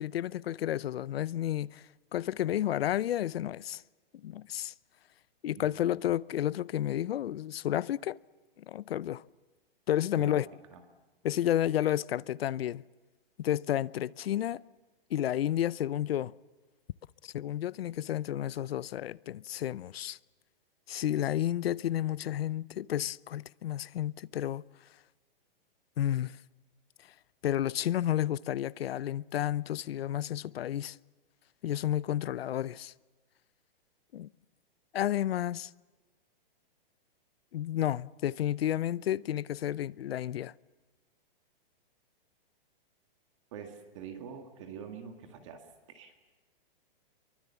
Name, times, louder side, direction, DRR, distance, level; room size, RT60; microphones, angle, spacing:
voice 1, 0.0-1.8 2.1-3.8 4.2-4.7 5.4-8.2 8.6-9.2 9.9-10.5 11.2-12.8 13.4-14.6 15.1-16.3 17.2-20.2 20.9-24.6 26.0-26.4 27.4-31.0 31.6-32.9 34.1-34.3 34.9-35.7 37.5-40.5, left 12 dB, 80° left, 0.6 m, -31 dB
voice 2, 5.6-5.9 10.2-10.5 10.7-10.8 43.5-45.6 45.9-46.1, right 7 dB, 30° right, 1.9 m, -45 dB
24.0 x 23.5 x 7.0 m
hypercardioid pair, 180°, 30 cm